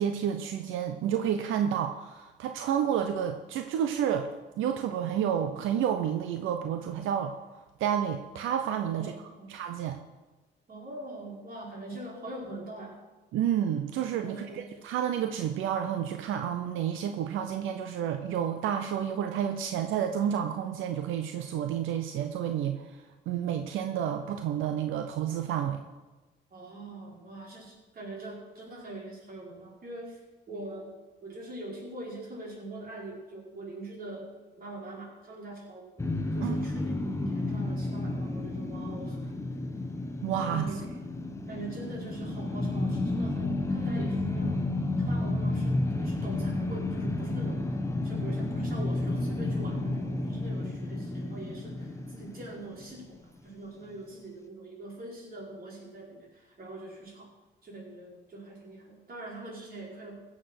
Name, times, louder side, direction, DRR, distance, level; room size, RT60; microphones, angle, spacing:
voice 1, 0.0-4.3 4.6-7.3 7.8-9.1 9.5-10.0 13.3-23.0 23.3-25.8 36.4-36.5 40.2-40.7, right 9 dB, 90° right, 7 dB, 0.8 m, -30 dB
voice 2, 8.9-9.5 10.7-13.0 14.2-14.7 26.5-30.2 30.5-30.9 31.2-34.3 34.6-35.9 36.3-39.3 40.5-40.8 41.5-44.6 45.0-53.2 53.4-57.3 57.6-60.2, right 2 dB, 50° right, -2 dB, 4.8 m, -43 dB
sound 1, 36.0-53.2, left 2 dB, 15° left, 1.2 m, -31 dB
16.0 x 7.6 x 6.0 m, 1.2 s
cardioid pair, 90°, 20 cm